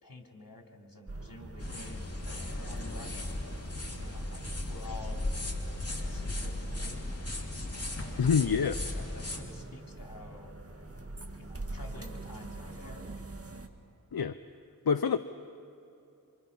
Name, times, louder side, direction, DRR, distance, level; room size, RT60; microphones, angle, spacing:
voice 1, 0.0-3.4 4.0-7.7 8.2-10.6 11.3-13.3, left 2 dB, 65° left, 2 dB, 3.2 m, -50 dB
sound 1, 1.1-13.7, right 2 dB, 40° right, 1.8 m, -43 dB
sound 2, 1.6-9.4, left 2 dB, 40° left, 3.1 m, -37 dB
voice 2, 8.2-8.8 14.1-14.4 14.9-15.2, left 6 dB, 85° left, 9 dB, 0.7 m, -26 dB
28.0 x 27.0 x 5.7 m, 2.8 s
wide cardioid pair, 45°, 36 cm